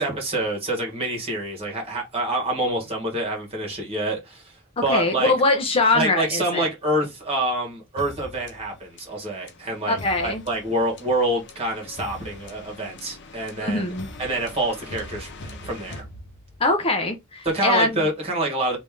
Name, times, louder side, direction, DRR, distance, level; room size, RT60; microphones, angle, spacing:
voice 1, 0.0-4.5 4.8-5.3 5.9-13.8 14.2-16.0 17.4-18.8, right 1 dB, 30° right, 1.5 m, -26 dB
voice 2, 4.9-6.7 9.9-10.4 13.6-14.1 16.6-18.0, left 2 dB, 25° left, 0.5 m, -22 dB
sound 1, 8.0-16.8, left 1 dB, 55° left, 0.8 m, -42 dB
3.2 x 2.7 x 3.5 m
head